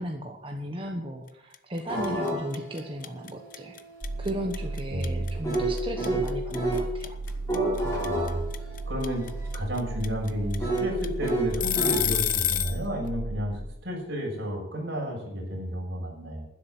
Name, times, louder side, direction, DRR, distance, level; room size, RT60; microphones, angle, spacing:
voice 1, 0.0-3.8 4.2-7.2, equal, 25° right, 2 dB, 1.2 m, -35 dB
sound 1, 1.5-1.8 2.0-12.8, left 11 dB, 40° left, 0.9 m, -28 dB
sound 2, 1.9-6.9 7.3-12.0, right 2 dB, 15° left, 6.8 m, -32 dB
sound 3, 4.0-13.6, right 3 dB, 90° right, 2.8 m, -35 dB
voice 2, 4.9-5.3 8.0-8.4 8.9-9.2 9.5-16.5, equal, 55° right, -1 dB, 6.4 m, -32 dB
12.0 x 10.5 x 8.2 m, 0.87 s
head